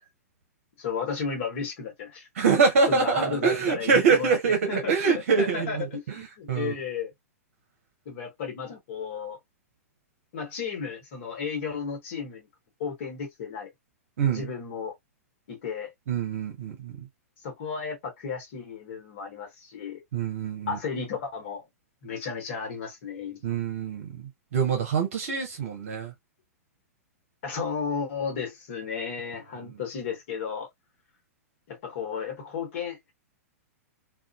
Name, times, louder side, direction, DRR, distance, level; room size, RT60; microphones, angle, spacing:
voice 1, 0.8-2.3 2.9-4.4 4.7-7.1 8.0-9.4 10.3-12.5 12.8-13.7 14.3-14.9 15.5-15.9 17.4-20.0 20.7-21.6 22.0-23.4 27.4-30.7 31.7-33.0, left 6 dB, 55° left, 1.2 m, -33 dB
voice 2, 2.4-5.9 6.5-6.7 14.2-14.5 16.1-16.9 20.1-20.8 23.4-26.1, right 5 dB, 60° right, 0.8 m, -24 dB
2.5 x 2.4 x 2.2 m
figure-of-eight pair, 105°, 8 cm